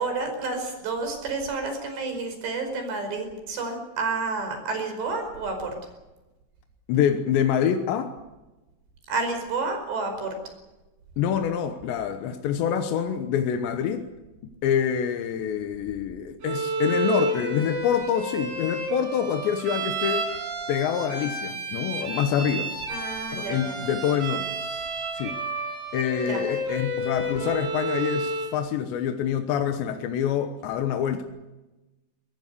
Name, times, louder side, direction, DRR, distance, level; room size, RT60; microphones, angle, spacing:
voice 1, 0.0-5.7 9.1-10.3 22.9-23.8 26.3-26.4, right 3 dB, 70° right, 6 dB, 7.2 m, -30 dB
voice 2, 6.9-8.1 11.2-14.1 14.4-20.3 20.7-22.7 23.3-24.5 25.1-25.4 25.9-31.2, left 8 dB, 75° left, 6 dB, 3.4 m, -26 dB
Bowed string instrument, 16.4-28.6, right 2 dB, 90° right, 9.9 m, -30 dB
24.0 x 21.0 x 6.9 m, 1.1 s
omnidirectional pair, 5.2 m